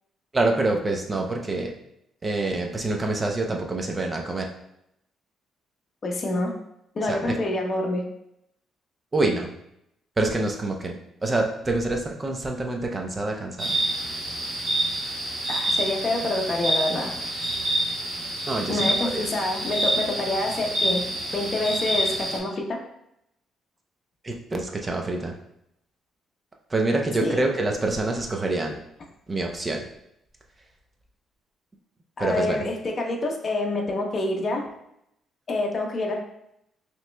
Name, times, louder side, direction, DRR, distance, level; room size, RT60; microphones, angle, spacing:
voice 1, 0.3-1.7 2.2-4.5 7.1-7.3 9.1-9.5 10.2-10.9 11.2-13.7 18.5-19.2 24.2-25.3 26.7-28.8 29.3-29.8 32.2-32.6, right 2 dB, 20° right, 2 dB, 0.6 m, -26 dB
voice 2, 6.0-6.5 6.9-8.0 15.5-17.1 18.7-21.0 21.3-22.8 27.2-27.4 32.2-34.6 35.5-36.2, left 2 dB, 35° left, 0 dB, 0.8 m, -27 dB
sound 1, 13.6-22.4, right 1 dB, 50° right, 1.3 m, -27 dB
5.7 x 3.1 x 2.2 m, 0.78 s
cardioid pair, 120°, 0 cm